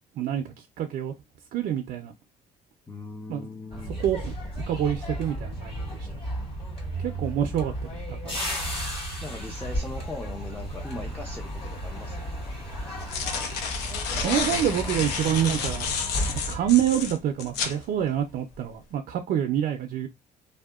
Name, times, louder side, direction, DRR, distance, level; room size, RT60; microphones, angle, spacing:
voice 1, 0.2-1.1 1.5-2.1 3.3-3.4 4.0-4.3 4.7-6.1 7.0-8.4 14.1-15.9 16.5-20.1, right 10 dB, 60° right, 0.5 m, -27 dB
voice 2, 2.9-4.0 9.2-12.2, left 2 dB, 10° left, 0.5 m, -39 dB
sound 1, 3.7-17.7 18.0-18.3, equal, 35° left, 1.6 m, -34 dB
sound 2, 9.7-16.0, equal, 55° left, 0.6 m, -44 dB
sound 3, 11.7-11.8 12.8-17.8, left 6 dB, 85° left, 0.6 m, -31 dB
2.7 x 2.1 x 2.3 m
cardioid pair, 110°, 17 cm